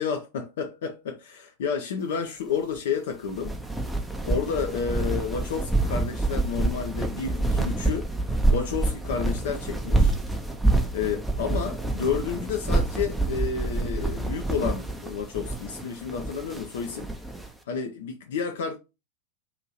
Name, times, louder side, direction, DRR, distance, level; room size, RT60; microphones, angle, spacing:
voice 1, 0.0-3.6 4.3-8.1 8.5-10.1 10.9-17.1 17.7-18.8, left 6 dB, 60° left, 0.4 m, -30 dB
sound 1, 3.3-17.5, right 2 dB, 5° right, 0.5 m, -27 dB
2.9 x 2.6 x 4.0 m
figure-of-eight pair, 90°, 0 cm